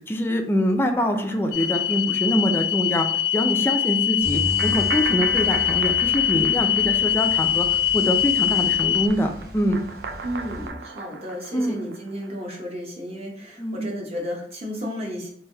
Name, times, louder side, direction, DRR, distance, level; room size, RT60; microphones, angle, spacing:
voice 1, 0.1-3.1 3.3-7.7 7.9-9.8 11.5-11.8 13.6-13.8, equal, 15° left, 4 dB, 0.3 m, -24 dB
sound 1, 0.9-2.6 2.9-3.0 4.6-8.1 8.3-12.6, right 4 dB, 70° right, 0.4 m, -37 dB
sound 2, 1.5-9.1, left 11 dB, 90° left, 0.3 m, -22 dB
sound 3, 4.2-10.7, equal, 55° right, 1.3 m, -36 dB
voice 2, 10.2-15.3, equal, 35° right, -1 dB, 0.9 m, -33 dB
3.3 x 2.6 x 3.3 m, 0.63 s
head